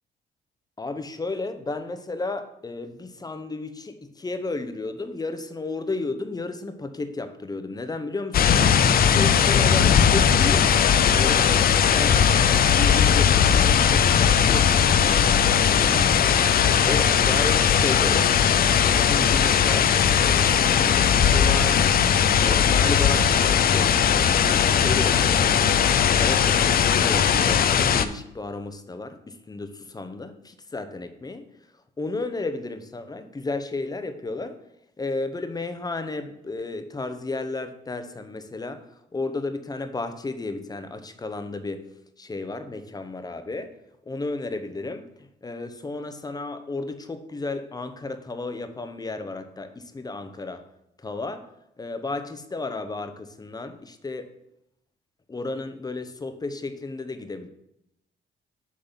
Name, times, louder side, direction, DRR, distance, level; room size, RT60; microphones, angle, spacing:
voice 1, 0.8-8.8 9.1-10.7 11.1-15.4 15.7-16.4 16.8-18.3 18.7-19.9 20.2-21.8 22.4-25.7 26.1-31.4 32.0-34.6 35.0-38.9 39.1-41.9 42.2-43.7 44.1-50.6 51.0-51.5 51.8-54.3 55.3-57.5, left 3 dB, 20° left, 9 dB, 0.7 m, -33 dB
sound 1, 8.3-28.0, left 8 dB, 50° left, 0.5 m, -19 dB
6.8 x 3.9 x 5.6 m, 0.80 s
cardioid pair, 90°, 20 cm